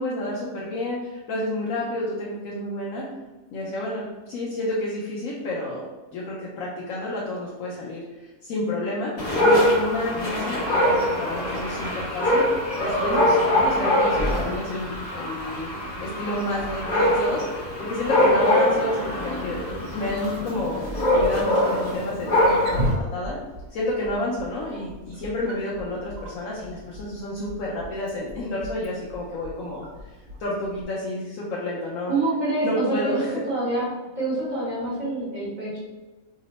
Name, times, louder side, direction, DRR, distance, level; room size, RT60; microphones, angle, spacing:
voice 1, 0.0-3.1 3.5-5.8 6.1-15.7 16.0-23.4 23.7-30.1 30.4-32.1 32.6-33.3, left 1 dB, 80° left, -5 dB, 1.0 m, -30 dB
Dog, 9.2-22.9, left 1 dB, 35° left, 0.9 m, -23 dB
Wild animals, 22.3-30.8, equal, 50° right, 0.8 m, -36 dB
voice 2, 32.1-33.9 34.2-35.8, right 2 dB, 35° right, -7 dB, 1.1 m, -26 dB
2.9 x 2.0 x 4.0 m, 1.2 s
omnidirectional pair, 1.5 m